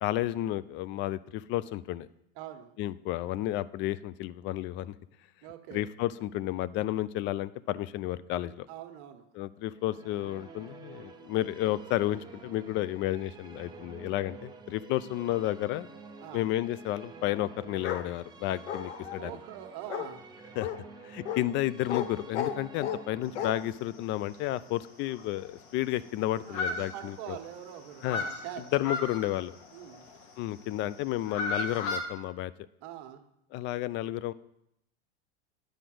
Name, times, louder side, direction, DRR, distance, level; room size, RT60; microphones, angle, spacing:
voice 1, 0.0-2.1 2.8-4.9 5.7-8.7 9.3-15.9 16.3-19.3 20.6-20.7 21.0-27.4 28.0-28.2 28.7-29.5 30.4-32.5 33.5-34.3, left 14 dB, 35° left, 17 dB, 0.4 m, -32 dB
voice 2, 2.4-2.7 5.4-5.9 8.7-9.2 16.2-16.5 19.2-20.2 26.4-28.6 29.7-30.1 32.8-33.2, right 11 dB, 55° right, 6 dB, 1.4 m, -43 dB
Musical instrument, 9.7-25.1, right 4 dB, 10° right, 0.9 m, -50 dB
Bark, 17.8-18.1 18.7-19.2 19.9-20.1 20.6-20.8 21.3-21.4 21.9-22.1 22.3-23.0 23.4-23.5, left 9 dB, 80° left, 1.1 m, -33 dB
sound 1, 23.3-23.9 24.3-24.4 24.7-24.8 25.1-26.1 26.4-27.5 27.8-30.3 31.0-32.0, left 3 dB, 50° left, 1.7 m, -35 dB
10.0 x 5.0 x 7.7 m, 0.80 s
supercardioid pair, 125°, 34 cm